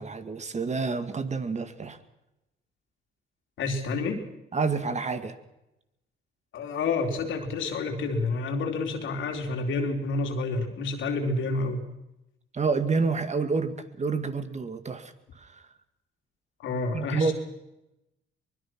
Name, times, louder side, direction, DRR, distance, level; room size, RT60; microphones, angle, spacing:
voice 1, 0.0-2.0 4.5-5.4 12.5-15.7 16.9-17.3, right 4 dB, 35° right, 9 dB, 2.2 m, -29 dB
voice 2, 3.6-4.2 6.5-11.8 16.6-17.3, left 3 dB, 75° left, 4 dB, 3.8 m, -29 dB
23.5 x 21.0 x 6.2 m, 0.90 s
cardioid pair, 90°, 20 cm